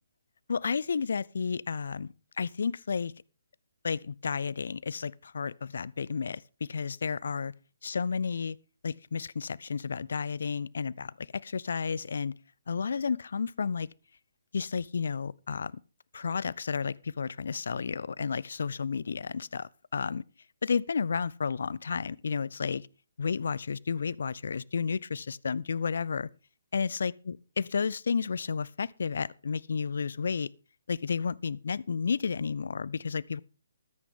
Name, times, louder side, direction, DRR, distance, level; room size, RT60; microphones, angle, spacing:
voice 1, 0.5-3.1 3.8-7.5 7.8-8.6 8.8-12.3 12.7-13.9 14.5-15.8 16.1-20.2 20.6-22.9 23.2-26.3 26.7-27.1 27.6-30.5 30.9-33.4, left 5 dB, 55° left, 0.5 m, -32 dB
14.5 x 13.5 x 3.8 m
figure-of-eight pair, 135°, 0 cm